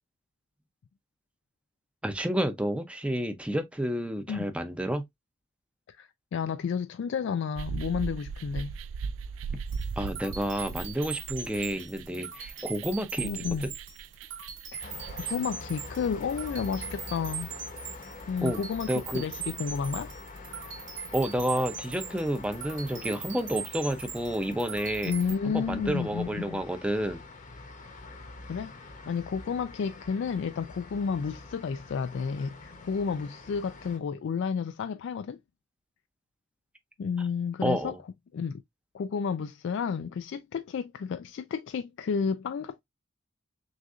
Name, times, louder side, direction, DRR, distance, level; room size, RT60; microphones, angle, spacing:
voice 1, 2.0-5.1 10.0-13.7 18.4-18.6 18.9-19.2 21.1-25.1 25.5-27.2 37.6-38.0, right 1 dB, 5° right, 0.5 m, -30 dB
voice 2, 5.9-8.7 13.2-13.7 14.7-17.5 18.3-20.1 25.0-26.6 28.5-35.4 37.0-37.9 38.3-38.6 38.9-42.8, left 6 dB, 60° left, 0.3 m, -31 dB
sound 1, 7.6-15.4, right 5 dB, 80° right, 0.3 m, -38 dB
sound 2, 9.7-25.3, right 7 dB, 65° right, 2.4 m, -41 dB
sound 3, 14.8-34.0, left 2 dB, 40° left, 0.8 m, -45 dB
6.2 x 2.5 x 2.4 m
head